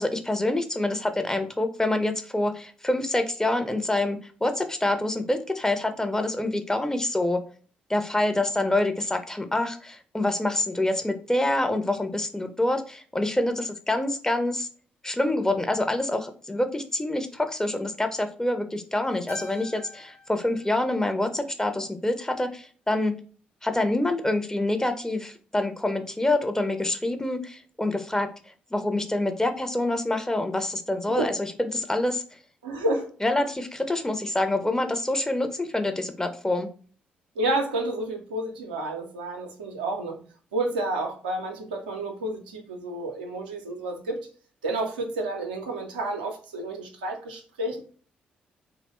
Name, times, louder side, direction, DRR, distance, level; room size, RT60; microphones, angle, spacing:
voice 1, 0.0-7.4 7.9-14.7 15.0-23.1 23.6-28.3 28.7-32.2 33.2-36.7, left 1 dB, 15° left, 7 dB, 0.6 m, -26 dB
Keyboard (musical), 19.3-21.8, left 2 dB, 45° left, 1.0 m, -45 dB
voice 2, 32.6-33.1 37.4-40.2 40.5-44.3 44.6-47.8, right 2 dB, 85° right, 2 dB, 0.4 m, -30 dB
2.9 x 2.1 x 3.0 m, 0.42 s
figure-of-eight pair, 40°, 4 cm